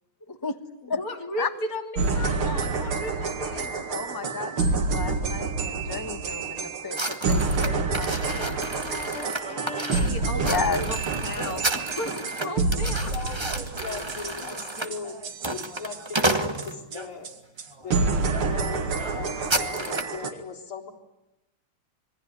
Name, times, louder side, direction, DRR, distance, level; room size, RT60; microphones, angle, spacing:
voice 1, 0.8-3.7 7.9-11.0 11.2-13.1, left 2 dB, 40° left, 3 dB, 3.5 m, -36 dB
sound 1, 2.0-16.7 16.9-17.0 17.2-17.3 17.6-17.7 17.9-20.3, right 4 dB, 80° right, 2.9 m, -28 dB
voice 2, 3.9-8.7 10.3-10.9, left 4 dB, 15° left, 9 dB, 0.8 m, -32 dB
sound 2, 6.9-17.1 17.7-17.9 18.3-18.4 18.7-20.2, right 1 dB, 15° right, 1.4 m, -31 dB
voice 3, 12.7-15.2 15.5-17.3 17.8-20.9, left 5 dB, 80° left, 0 dB, 5.0 m, -39 dB
27.0 x 22.5 x 9.6 m, 0.92 s
omnidirectional pair, 2.3 m